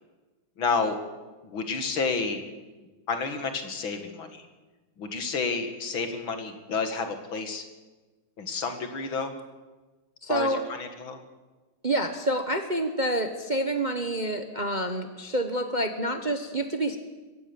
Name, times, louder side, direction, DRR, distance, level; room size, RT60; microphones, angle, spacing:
voice 1, 0.6-1.0 1.4-2.4 3.1-4.5 5.0-7.6 8.4-9.3 10.3-11.2, left 4 dB, 70° left, 7 dB, 2.7 m, -30 dB
voice 2, 10.2-10.6 11.8-17.0, right 1 dB, 30° right, 7 dB, 1.0 m, -28 dB
22.0 x 17.5 x 7.1 m, 1.2 s
omnidirectional pair, 2.3 m